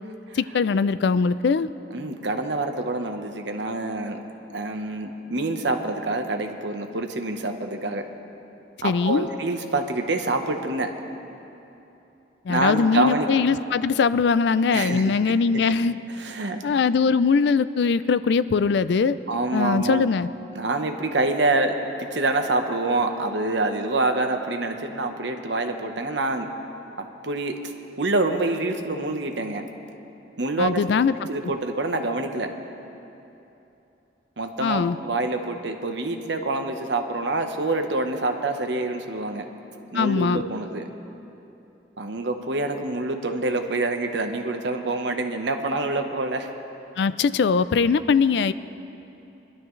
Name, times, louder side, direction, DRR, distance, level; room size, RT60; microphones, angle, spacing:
voice 1, 0.3-1.7 8.8-9.3 12.5-16.0 16.6-19.2 19.5-20.3 30.6-31.1 34.6-35.0 39.9-40.4 47.0-48.5, left 5 dB, 65° left, 15 dB, 0.4 m, -21 dB
voice 2, 1.9-4.2 4.5-8.1 8.8-10.9 12.5-13.3 14.7-15.6 16.2-16.6 19.3-20.1 20.5-26.5 27.0-27.5 28.0-29.7 30.4-30.8 31.3-32.5 34.4-39.5 39.9-40.8 42.0-46.5, right 2 dB, 75° right, 5 dB, 1.0 m, -26 dB
22.0 x 12.0 x 3.2 m, 2.9 s
head